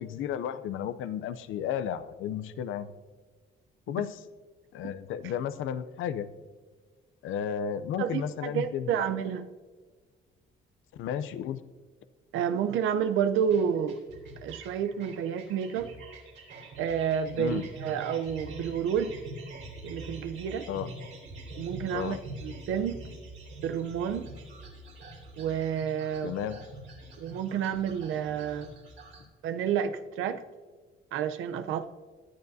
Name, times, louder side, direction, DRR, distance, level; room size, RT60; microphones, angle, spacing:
voice 1, 0.0-2.9 3.9-4.2 4.7-6.3 7.2-9.1 10.9-11.6 17.4-17.7 20.7-20.9 21.9-22.2 26.2-26.6, left 9 dB, 85° left, 13 dB, 0.6 m, -33 dB
voice 2, 8.0-9.5 12.3-14.0 14.4-15.9 16.8-19.1 19.8-20.7 21.6-22.2 22.4-23.0 23.6-24.3 25.4-26.3 27.2-28.7 29.4-30.4 31.1-31.9, right 8 dB, 90° right, 10 dB, 0.7 m, -30 dB
sound 1, 13.3-29.2, right 2 dB, 70° right, 3.4 m, -45 dB
18.5 x 10.5 x 2.7 m, 1.5 s
cardioid pair, 90°, 20 cm